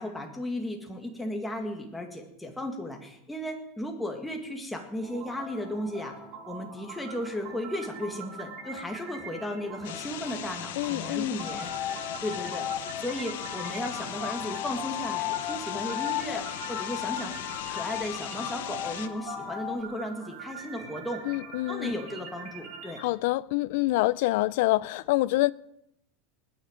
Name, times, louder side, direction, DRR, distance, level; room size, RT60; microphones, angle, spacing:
voice 1, 0.0-6.1 6.5-11.7 12.2-17.4 17.7-21.2 21.7-23.0, left 1 dB, 5° left, 1.9 m, -35 dB
sound 1, 5.0-23.0, right 5 dB, 50° right, 4.4 m, -44 dB
sound 2, 9.8-19.1, left 12 dB, 85° left, 1.0 m, -39 dB
voice 2, 10.8-11.4 21.2-21.9 23.0-25.5, left 19 dB, 65° left, 0.4 m, -26 dB
sound 3, 11.4-19.8, left 12 dB, 30° left, 0.9 m, -36 dB
20.0 x 9.2 x 5.1 m
supercardioid pair, 155°, 0 cm